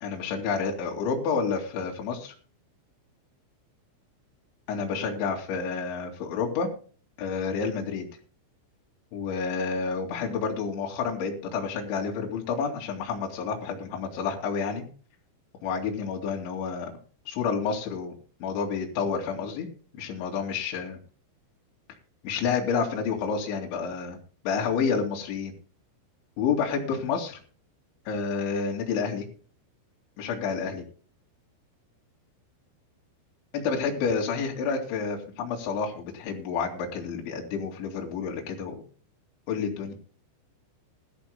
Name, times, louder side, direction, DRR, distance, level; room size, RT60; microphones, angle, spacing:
voice 1, 0.0-2.3 4.7-6.7 7.2-8.1 9.1-14.8 15.6-16.9 17.3-18.1 18.4-19.7 19.9-21.0 22.2-24.2 24.4-25.5 26.4-27.4 28.1-29.3 30.2-30.8 33.5-38.8 39.5-40.0, left 5 dB, 65° left, -1 dB, 4.7 m, -29 dB
21.0 x 13.0 x 2.2 m, 0.41 s
omnidirectional pair, 5.9 m